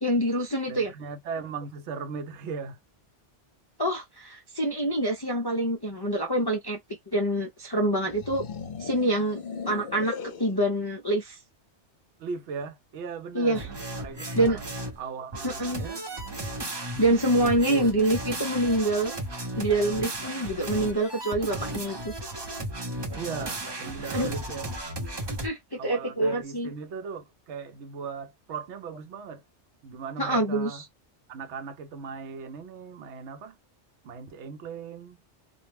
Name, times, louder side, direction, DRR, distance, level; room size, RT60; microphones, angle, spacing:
voice 1, 0.0-0.9 3.8-6.8 7.1-8.5 8.8-11.4 13.3-13.7 14.3-14.6 15.4-15.8 17.0-19.1 19.6-22.1 24.1-24.3 25.4-26.7 30.2-30.8, right 1 dB, 40° left, 0.3 m, -26 dB
voice 2, 0.7-2.8 12.2-16.0 17.4-18.0 23.1-24.7 25.7-29.4 29.8-30.8 31.3-33.6 34.0-35.2, right 5 dB, 75° right, 0.9 m, -38 dB
sound 1, 8.0-10.6, left 6 dB, 55° left, 0.8 m, -38 dB
sound 2, 13.5-15.0 15.3-25.5, right 1 dB, 25° right, 0.6 m, -35 dB
2.4 x 2.0 x 3.1 m
omnidirectional pair, 1.2 m